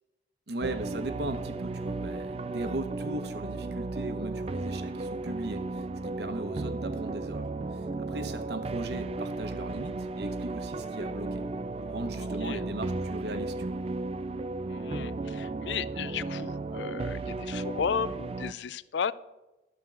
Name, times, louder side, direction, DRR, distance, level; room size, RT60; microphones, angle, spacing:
voice 1, 0.5-11.4 11.8-13.8, right 1 dB, 60° right, 9 dB, 0.9 m, -38 dB
sound 1, 0.6-18.5, right 3 dB, 30° right, 0.3 m, -34 dB
voice 2, 14.7-19.1, left 7 dB, 70° left, 18 dB, 0.4 m, -34 dB
13.0 x 4.6 x 7.4 m, 1.0 s
head